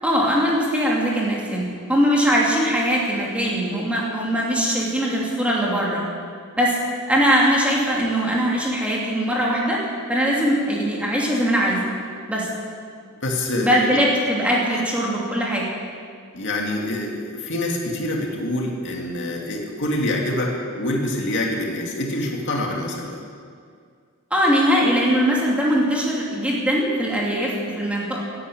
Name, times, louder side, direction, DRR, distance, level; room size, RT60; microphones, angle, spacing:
voice 1, 0.0-6.0 6.6-6.8 7.1-9.8 10.1-11.8 12.3-12.5 13.6-15.7 24.3-28.2, equal, 5° right, -4 dB, 2.7 m, -21 dB
voice 2, 13.2-14.0 16.3-23.2, left 1 dB, 55° left, 0 dB, 2.4 m, -26 dB
16.5 x 9.9 x 8.6 m, 2.1 s
head